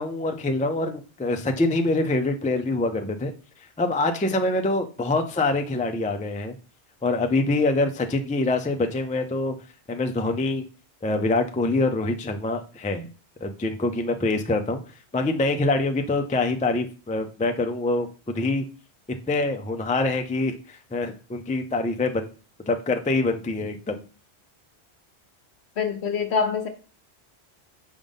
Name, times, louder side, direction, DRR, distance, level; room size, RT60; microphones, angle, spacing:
voice 1, 0.0-3.3 3.8-6.5 7.0-9.6 9.9-10.6 11.0-13.1 13.4-14.8 15.1-18.1 18.3-18.6 19.3-22.3 22.7-24.0, left 2 dB, 15° left, 0.3 m, -25 dB
voice 2, 25.8-26.7, left 6 dB, 75° left, 1.2 m, -25 dB
5.1 x 3.7 x 5.3 m
omnidirectional pair, 1.1 m